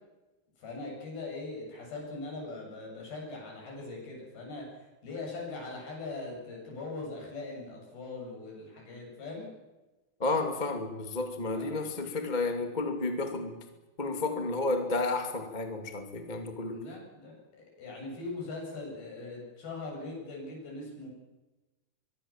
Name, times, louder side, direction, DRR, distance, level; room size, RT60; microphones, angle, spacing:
voice 1, 0.6-9.5 11.6-11.9 16.7-21.1, left 3 dB, 60° left, -1 dB, 9.8 m, -41 dB
voice 2, 10.2-13.6 14.0-16.8, left 3 dB, 15° left, 5 dB, 1.7 m, -31 dB
24.0 x 23.5 x 7.4 m, 1.1 s
omnidirectional pair, 4.8 m